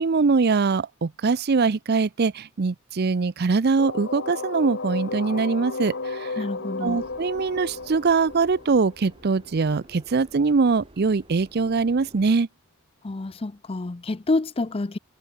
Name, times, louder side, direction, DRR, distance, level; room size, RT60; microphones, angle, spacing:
voice 1, 0.0-6.4 6.8-12.5, right 4 dB, 50° right, 0.5 m, -22 dB
sound 1, 3.8-9.5, left 3 dB, 55° left, 1.5 m, -33 dB
voice 2, 6.4-7.0 13.0-15.0, left 2 dB, 25° left, 0.5 m, -28 dB
Subway metro underground, 6.9-12.3, right 1 dB, 25° right, 5.6 m, -51 dB
head